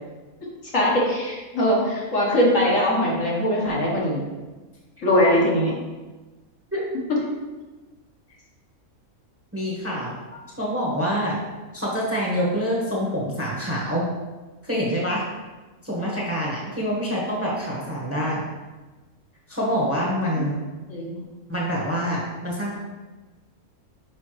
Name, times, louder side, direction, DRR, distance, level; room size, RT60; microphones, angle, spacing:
voice 1, 0.7-4.2 5.0-5.7 10.3-10.4 20.9-21.2, equal, 60° left, -4 dB, 1.7 m, -21 dB
voice 2, 9.5-10.1 10.6-11.4 11.7-14.1 14.6-15.2 15.8-18.4 19.5-20.6 21.5-22.8, equal, 10° right, -4 dB, 1.1 m, -26 dB
6.4 x 5.0 x 3.2 m, 1.2 s
omnidirectional pair, 1.5 m